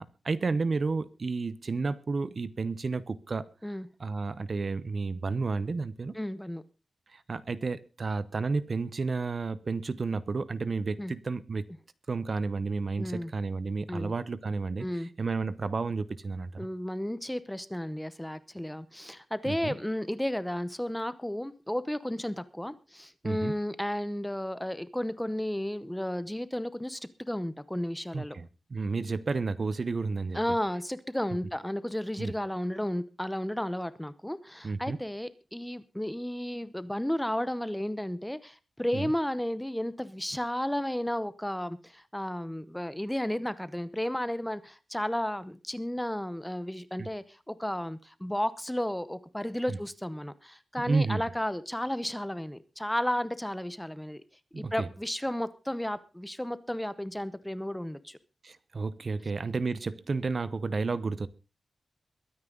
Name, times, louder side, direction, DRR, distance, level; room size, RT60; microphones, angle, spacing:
voice 1, 0.0-3.5 4.0-6.2 7.1-11.7 12.1-16.7 19.4-19.7 23.2-23.5 28.1-30.4 32.2-32.3 34.6-35.0 38.9-39.1 47.0-47.1 49.7-49.8 50.9-51.2 54.5-54.9 58.4-61.3, right 4 dB, 35° right, 0.9 m, -31 dB
voice 2, 6.1-6.6 11.0-11.1 13.0-13.3 13.9-14.1 14.8-15.1 16.6-27.0 27.3-28.4 30.3-54.2 54.5-58.2, left 1 dB, 5° left, 0.8 m, -33 dB
22.5 x 9.5 x 3.9 m
wide cardioid pair, 170°, 0 cm